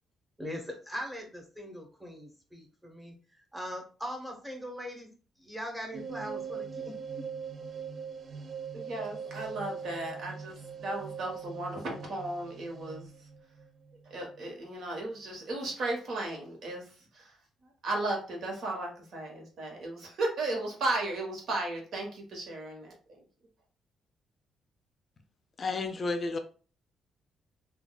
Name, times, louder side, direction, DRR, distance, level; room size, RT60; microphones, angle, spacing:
voice 1, 0.4-5.1 5.4-7.2, equal, 5° right, 1.1 m, -41 dB
sound 1, 5.9-14.5, right 6 dB, 45° right, 0.3 m, -42 dB
voice 2, 8.7-13.1 14.1-17.3 17.8-22.9, right 2 dB, 65° right, 1.1 m, -35 dB
voice 3, 25.6-26.4, left 3 dB, 40° left, 0.4 m, -31 dB
3.5 x 2.3 x 2.3 m
cardioid pair, 90°, 0 cm